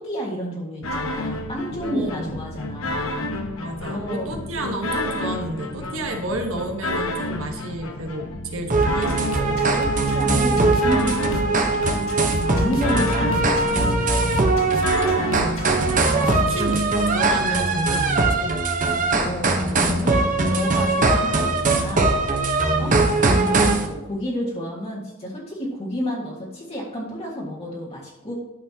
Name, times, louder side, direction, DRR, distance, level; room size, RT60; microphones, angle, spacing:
voice 1, 0.0-3.3 3.9-4.3 9.5-12.0 12.4-14.2 15.1-16.4 19.1-22.2 22.8-22.9 23.4-28.3, equal, 30° left, -4 dB, 1.7 m, -31 dB
sound 1, 0.8-16.8, left 1 dB, 85° left, 1.1 m, -29 dB
voice 2, 1.8-2.4 3.6-9.2 12.4-13.1 15.3-15.8 16.5-18.7 22.7-23.2, right 1 dB, 80° right, 3 dB, 1.4 m, -31 dB
sound 2, 8.7-23.9, right 3 dB, 40° right, 1.0 m, -21 dB
12.0 x 6.7 x 2.9 m, 1.1 s
head